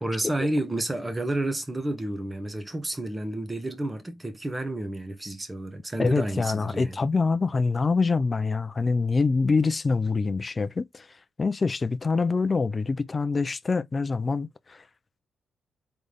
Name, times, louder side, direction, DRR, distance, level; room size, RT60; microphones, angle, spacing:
voice 1, 0.0-7.0, right 1 dB, 15° right, 1.1 m, -30 dB
voice 2, 6.0-11.1 11.4-14.8, left 4 dB, 30° left, 0.5 m, -25 dB
4.0 x 3.3 x 3.4 m
cardioid pair, 95°, 0 cm